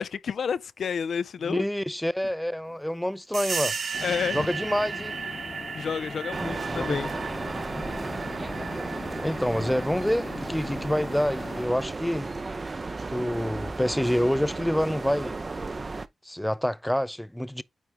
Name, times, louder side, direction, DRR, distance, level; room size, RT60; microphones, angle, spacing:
voice 1, 0.0-1.6 4.0-4.5 5.7-7.1, left 7 dB, 80° left, 0.4 m, -30 dB
voice 2, 1.4-3.7 4.3-5.1 6.7-7.0 9.2-12.3 13.1-15.4 16.3-17.6, equal, 5° left, 0.4 m, -27 dB
sound 1, 3.3-11.6, right 5 dB, 70° right, 1.2 m, -36 dB
sound 2, 3.9-11.7, left 3 dB, 40° left, 1.0 m, -40 dB
sound 3, 6.3-16.1, right 3 dB, 40° right, 0.6 m, -34 dB
9.2 x 3.2 x 3.5 m
cardioid pair, 70°, 0 cm